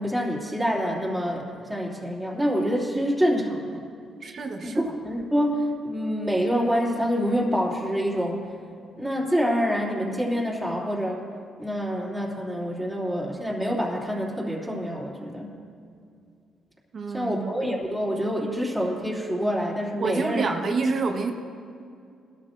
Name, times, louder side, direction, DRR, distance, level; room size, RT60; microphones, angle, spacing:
voice 1, 0.0-3.8 4.6-8.4 9.0-11.2 11.6-15.6 17.1-20.5, equal, ahead, -6 dB, 2.9 m, -26 dB
voice 2, 4.2-4.9 16.9-17.6 20.0-21.3, right 4 dB, 50° right, 4 dB, 1.2 m, -28 dB
20.0 x 12.5 x 2.6 m, 2.4 s
cardioid pair, 90°, 0 cm